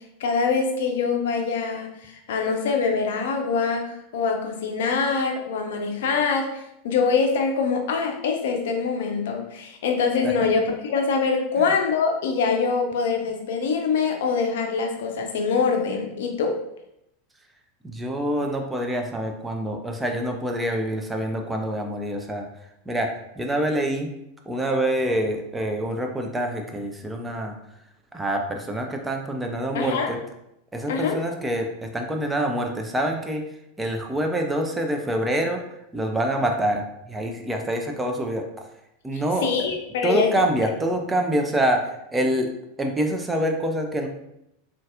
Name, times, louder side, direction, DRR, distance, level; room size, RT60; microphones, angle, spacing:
voice 1, 0.2-16.6 29.7-30.1 30.9-31.2 39.4-40.3, left 5 dB, 60° left, 3 dB, 0.5 m, -24 dB
voice 2, 17.8-22.5 22.9-23.1 23.4-24.1 24.5-27.6 28.1-30.2 30.7-33.4 33.8-35.6 35.9-38.4 39.0-39.5 40.0-42.5 42.8-44.1, right 1 dB, 10° right, 3 dB, 0.4 m, -26 dB
3.9 x 2.4 x 2.4 m, 0.81 s
figure-of-eight pair, 85°, 0 cm